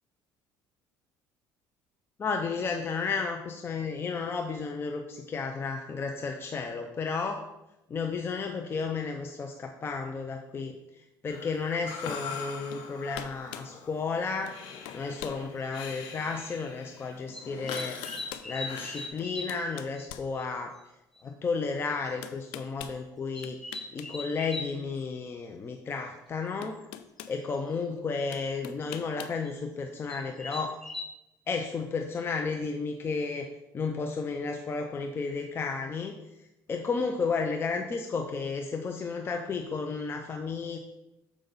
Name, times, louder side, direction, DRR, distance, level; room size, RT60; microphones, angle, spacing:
voice 1, 2.2-7.4 7.9-14.6 14.9-18.0 18.5-20.7 21.2-23.6 23.9-26.8 27.3-30.8 31.5-33.4 33.7-36.1 36.7-40.8, left 4 dB, 30° left, 4 dB, 0.5 m, -33 dB
Breathing, 11.3-19.1, left 6 dB, 70° left, 0.9 m, -43 dB
sound 1, 12.7-12.9 13.1-13.7 14.5-14.6 14.8-15.4 16.0-16.1 17.2-17.3 17.7-18.5 19.2-20.9 22.2-23.0 23.4-24.1 24.4-24.6 26.0-26.1 26.6-27.4 28.3-29.4, left 11 dB, 90° left, 0.4 m, -43 dB
sound 2, 15.7-15.9 17.3-19.7 20.0-20.1 20.4-20.5 20.8-20.9 21.1-21.2 22.1-22.3 23.3-24.7 26.8-26.9 27.2-27.6 29.4-29.5 30.1-31.1, left 2 dB, 5° left, 0.8 m, -40 dB
6.8 x 5.0 x 3.9 m, 0.93 s
cardioid pair, 110°, 8 cm